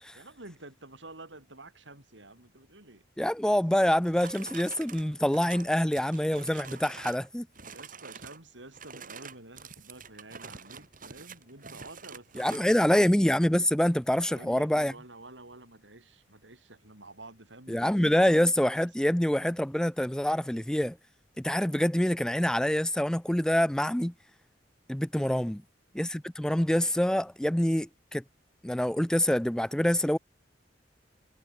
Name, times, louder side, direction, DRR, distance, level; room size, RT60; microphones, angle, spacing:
voice 1, 0.1-3.0 7.7-13.1 14.3-18.2 25.2-25.5, right 2 dB, 90° right, 7.4 m, -49 dB
voice 2, 3.2-7.5 12.4-14.9 17.7-21.0 21.4-24.1 24.9-25.6 25.9-28.2 28.6-30.2, equal, 5° left, 0.4 m, -26 dB
sound 1, 3.8-7.3 7.5-8.4 8.7-12.8, right 5 dB, 50° right, 6.0 m, -46 dB
head